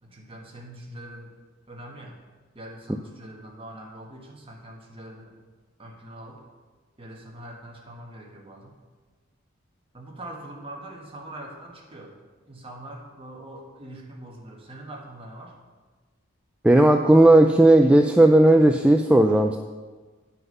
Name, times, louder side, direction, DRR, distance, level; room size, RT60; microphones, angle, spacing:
voice 1, 0.0-1.3 1.7-2.2 2.5-5.3 5.8-6.4 7.0-8.7 9.9-12.1 12.5-15.5, right 1 dB, 30° right, 0 dB, 1.4 m, -42 dB
voice 2, 16.6-19.6, right 1 dB, 5° right, 4 dB, 0.3 m, -15 dB
9.5 x 5.8 x 5.4 m, 1.4 s
head